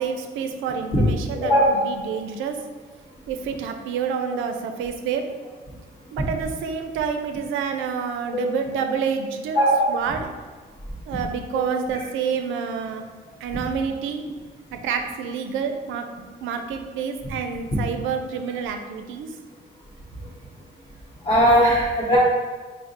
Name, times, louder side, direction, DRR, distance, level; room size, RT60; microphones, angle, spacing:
voice 1, 0.0-2.6 3.3-5.3 6.1-9.6 9.9-10.3 11.1-13.0 13.4-14.2 14.7-19.3, right 6 dB, 85° right, 6 dB, 0.4 m, -28 dB
voice 2, 1.4-1.8 8.3-8.4 9.5-9.9 21.2-22.2, equal, 30° left, -10 dB, 1.2 m, -18 dB
3.5 x 2.0 x 4.0 m, 1.4 s
cardioid pair, 90°, 20 cm